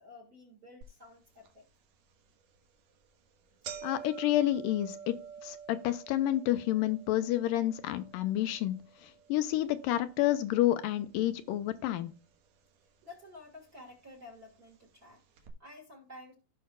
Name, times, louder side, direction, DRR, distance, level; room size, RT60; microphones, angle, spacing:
voice 1, 0.0-1.7 13.0-16.3, left 2 dB, 40° right, 1.4 m, -52 dB
sound 1, 0.8-0.9 1.5-1.6 2.4-2.6 2.9-3.0 3.3-11.5 11.7-12.5 13.3-13.4 14.3-14.4 14.7-14.8 15.4-15.5, right 7 dB, 75° right, 2.8 m, -48 dB
voice 2, 3.8-5.1 5.4-8.7 9.0-12.1, left 14 dB, 80° left, 2.3 m, -29 dB
16.0 x 5.6 x 2.2 m
omnidirectional pair, 4.0 m